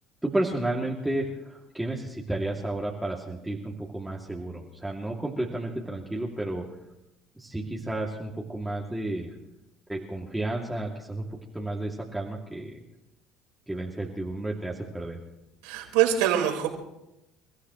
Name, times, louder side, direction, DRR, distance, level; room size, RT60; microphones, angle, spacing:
voice 1, 0.2-6.7 7.4-9.3 9.9-12.8 13.7-15.2, right 1 dB, 5° right, -3 dB, 2.6 m, -32 dB
voice 2, 15.6-16.7, right 11 dB, 75° right, 1 dB, 4.6 m, -23 dB
29.0 x 15.0 x 3.2 m, 0.90 s
hypercardioid pair, 70°, 0 cm